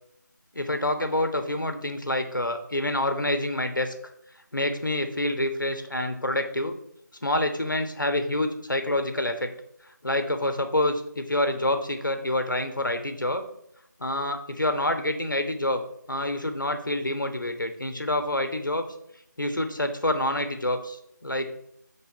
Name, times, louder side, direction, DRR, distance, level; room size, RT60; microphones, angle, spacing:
voice 1, 0.5-4.1 4.5-6.8 7.2-9.5 10.0-13.4 14.0-15.8 16.1-18.9 19.4-21.5, left 1 dB, 80° left, 6 dB, 1.3 m, -27 dB
7.3 x 3.9 x 5.9 m, 0.74 s
figure-of-eight pair, 165°, 10 cm